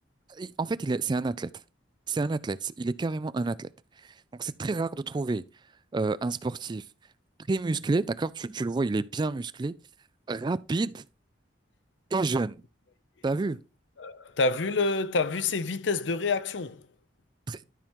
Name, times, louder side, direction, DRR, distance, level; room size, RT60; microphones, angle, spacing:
voice 1, 0.3-1.5 2.1-3.7 4.3-5.4 5.9-6.8 7.5-9.8 10.3-11.0 12.1-12.6 13.2-13.6 17.5-17.6, right 3 dB, 25° right, 0.3 m, -29 dB
voice 2, 14.0-16.8, left 3 dB, 75° left, 0.7 m, -27 dB
12.5 x 4.4 x 3.6 m
head